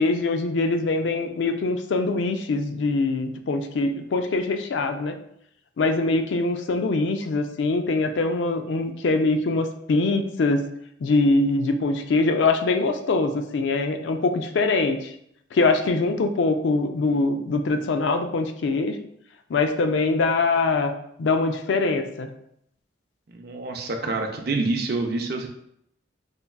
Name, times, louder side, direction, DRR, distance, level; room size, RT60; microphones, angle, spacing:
voice 1, 0.0-5.2 5.8-10.7 11.0-15.1 15.5-19.0 19.5-20.9 21.2-22.3, left 3 dB, 70° left, 7 dB, 0.4 m, -23 dB
voice 2, 23.3-25.5, right 3 dB, 55° right, 3 dB, 0.5 m, -27 dB
5.2 x 2.3 x 2.3 m, 0.74 s
head